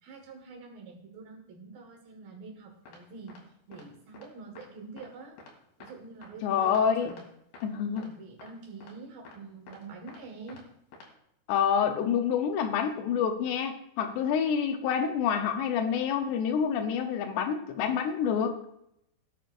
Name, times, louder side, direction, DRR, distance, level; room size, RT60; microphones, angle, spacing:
voice 1, 0.0-3.4 3.7-5.3 5.8-7.3 8.0-10.6, right 4 dB, 65° right, 1 dB, 3.4 m, -46 dB
sound 1, 2.9-3.0 3.3-3.4 3.7-3.8 4.1-4.3 4.6-4.7 5.0-5.1 5.4-5.5 5.8-5.9 6.2-6.3 6.7-6.8 7.1-7.2 7.5-7.6 8.0-8.1 8.4-8.5 8.8-8.9 9.3-9.4 9.7-10.2 10.5-10.6 10.9-11.1, left 3 dB, 65° left, 3.9 m, -49 dB
voice 2, 6.4-7.1 7.6-8.1 11.5-18.6, left 7 dB, 80° left, 6 dB, 3.1 m, -27 dB
17.5 x 9.1 x 2.6 m, 0.75 s
omnidirectional pair, 4.8 m